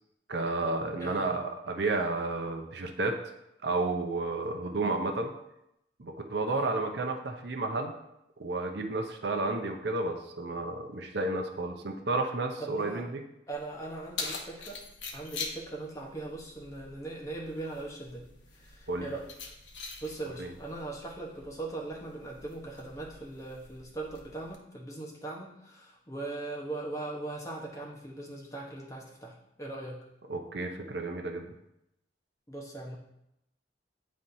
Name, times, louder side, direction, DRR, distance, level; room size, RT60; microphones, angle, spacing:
voice 1, 0.3-3.2 3.6-5.3 6.0-7.9 8.4-13.2 18.9-19.1 20.4-20.5 30.3-31.5, right 2 dB, 60° right, 4 dB, 0.6 m, -31 dB
voice 2, 1.0-1.3 6.5-6.8 12.6-13.0 13.5-14.8 15.1-18.2 18.5-19.2 20.0-30.0 32.5-33.0, right 2 dB, 15° left, -2 dB, 1.0 m, -40 dB
Keys jangling, 13.5-24.5, left 4 dB, 70° left, 0.9 m, -44 dB
9.0 x 4.3 x 2.7 m, 0.83 s
head